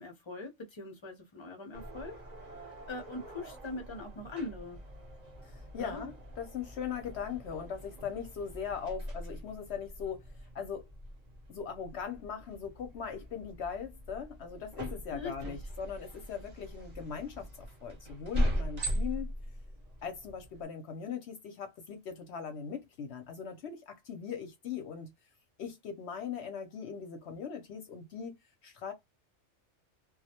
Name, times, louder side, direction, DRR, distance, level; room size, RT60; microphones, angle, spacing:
voice 1, 0.0-2.1 2.6-4.8 5.8-6.1 15.1-15.5, left 2 dB, 35° left, 0.5 m, -42 dB
sound 1, 1.7-20.6, equal, 40° right, 0.7 m, -40 dB
voice 2, 5.4-10.3 10.5-10.9 11.5-19.3 20.0-25.1 25.6-28.3 28.6-28.9, left 7 dB, 65° left, 0.8 m, -40 dB
2.3 x 2.0 x 2.7 m
omnidirectional pair, 1.3 m